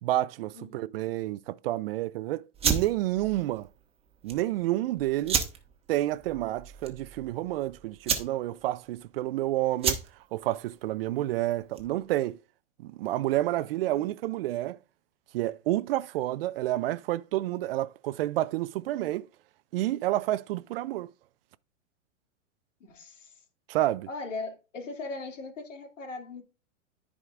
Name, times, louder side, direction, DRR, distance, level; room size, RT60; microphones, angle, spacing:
voice 1, 0.0-3.7 4.2-5.4 5.9-10.0 10.3-12.4 12.8-14.8 15.3-19.3 19.7-21.1 23.7-24.1, right 15 dB, 50° right, 0.5 m, -29 dB
voice 2, 0.5-0.9 13.5-14.2 22.8-23.3 24.1-26.4, left 3 dB, 80° left, 2.6 m, -40 dB
sound 1, 2.5-12.1, right 6 dB, 15° right, 1.3 m, -33 dB
14.5 x 5.0 x 2.4 m
hypercardioid pair, 125°, 37 cm